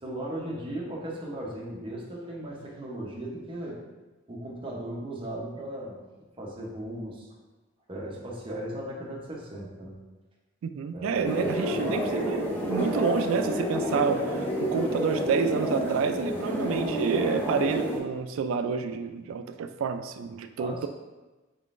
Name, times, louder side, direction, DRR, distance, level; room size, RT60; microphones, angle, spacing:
voice 1, 0.0-3.8 4.3-6.0 6.4-7.3 7.9-10.0 10.9-11.9 20.6-20.9, right 1 dB, 25° right, -4 dB, 0.8 m, -37 dB
voice 2, 10.6-20.9, right 6 dB, 75° right, 9 dB, 0.3 m, -29 dB
sound 1, 11.2-18.0, equal, 10° left, 0.6 m, -29 dB
4.1 x 3.7 x 2.5 m, 1.2 s
head